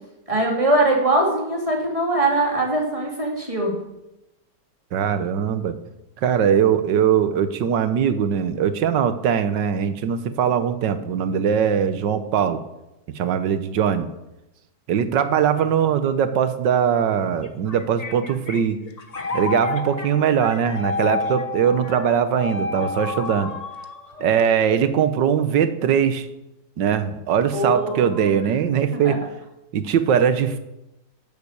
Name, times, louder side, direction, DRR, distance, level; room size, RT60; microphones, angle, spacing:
voice 1, 0.3-3.7 27.5-28.4 29.0-29.2, right 2 dB, 20° right, -1 dB, 2.8 m, -22 dB
voice 2, 4.9-5.8 6.2-12.6 13.2-14.1 14.9-18.8 19.3-23.5 24.2-26.3 26.8-29.2 29.7-30.6, right 8 dB, 85° right, 11 dB, 1.6 m, -21 dB
sound 1, 17.4-25.0, left 4 dB, 30° left, 0.8 m, -30 dB
12.0 x 7.4 x 8.2 m, 0.93 s
omnidirectional pair, 1.9 m